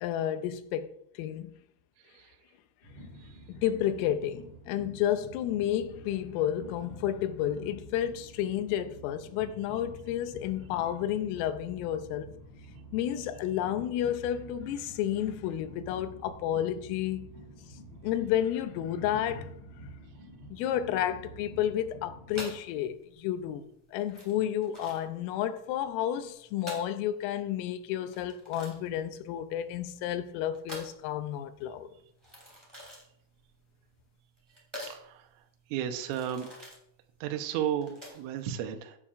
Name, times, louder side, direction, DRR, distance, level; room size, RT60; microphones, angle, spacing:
voice 1, 0.0-0.9 1.2-1.5 3.5-12.3 12.9-17.3 18.0-19.5 20.5-23.6 23.9-31.9, left 11 dB, 90° left, 3.3 m, -31 dB
Train, 2.8-22.6, right 1 dB, 45° right, 6.1 m, -48 dB
sound 1, 22.3-38.4, equal, 10° right, 1.7 m, -47 dB
voice 2, 34.9-35.2 35.7-36.5 37.2-39.0, right 10 dB, 80° right, 3.2 m, -33 dB
16.0 x 8.6 x 2.5 m
omnidirectional pair, 5.8 m